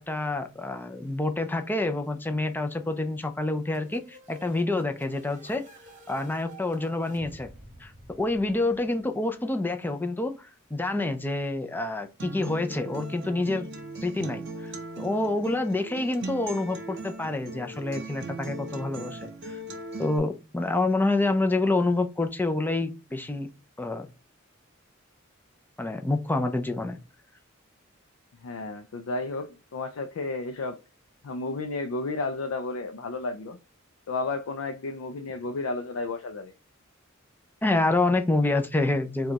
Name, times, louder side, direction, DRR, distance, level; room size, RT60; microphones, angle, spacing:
voice 1, 0.0-5.6 6.1-7.5 7.8-13.7 14.0-19.6 20.0-23.5 23.8-24.1 25.8-27.0 37.6-39.3, left 2 dB, 10° left, 0.5 m, -27 dB
sound 1, 3.7-9.4, right 1 dB, 40° right, 1.1 m, -51 dB
Acoustic guitar, 12.2-20.2, right 2 dB, 55° right, 0.8 m, -38 dB
voice 2, 28.4-30.8 31.2-33.6 34.1-36.5, left 3 dB, 75° left, 0.4 m, -32 dB
5.0 x 2.3 x 2.8 m
head